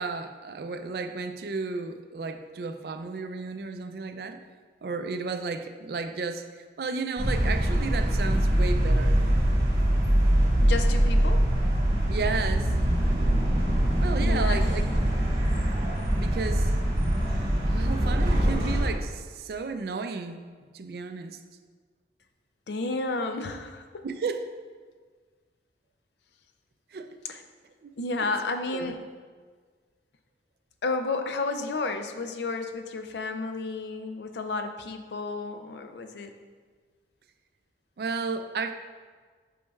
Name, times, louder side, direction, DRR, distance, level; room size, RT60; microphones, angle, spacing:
voice 1, 0.0-4.4 4.8-9.3 12.1-12.7 14.0-15.1 16.2-16.7 17.6-20.5 20.7-21.4 24.0-24.4 26.9-27.1 27.8-27.9 28.7-28.9 38.0-38.7, right 4 dB, 60° right, 8 dB, 0.4 m, -33 dB
sound 1, 7.2-18.9, right 1 dB, 45° right, 1.8 m, -23 dB
voice 2, 10.6-11.4 14.2-14.6 22.7-24.0 27.2-27.4 28.0-29.0 30.8-36.3, left 3 dB, 75° left, 7 dB, 0.5 m, -32 dB
8.4 x 5.4 x 2.3 m, 1.5 s
head